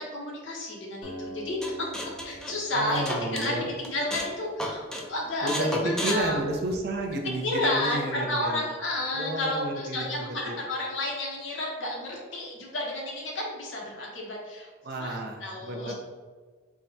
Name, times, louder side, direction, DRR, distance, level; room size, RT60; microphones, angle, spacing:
voice 1, 0.1-6.4 7.4-14.7 15.0-15.9, left 1 dB, 75° left, -2 dB, 1.0 m, -31 dB
Acoustic guitar, 1.0-4.6, right 1 dB, 25° left, 0.8 m, -45 dB
sound 1, 1.6-3.5 3.8-4.3 4.6-5.1 5.5-7.1, left 1 dB, 5° left, 0.4 m, -33 dB
voice 2, 2.7-3.6 5.4-5.7 6.0-8.6 9.1-10.6 14.8-15.9, right 1 dB, 60° right, 2 dB, 0.6 m, -32 dB
3.6 x 2.2 x 4.0 m, 1.5 s
head